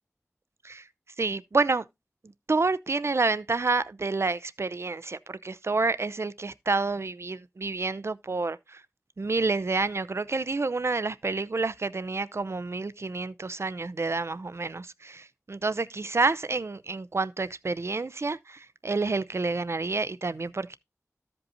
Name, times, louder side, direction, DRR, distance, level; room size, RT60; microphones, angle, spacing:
voice 1, 1.2-1.8 2.5-8.8 9.2-20.8, right 3 dB, 55° right, 0.5 m, -29 dB
14.0 x 5.3 x 2.8 m
wide cardioid pair, 60°, 5 cm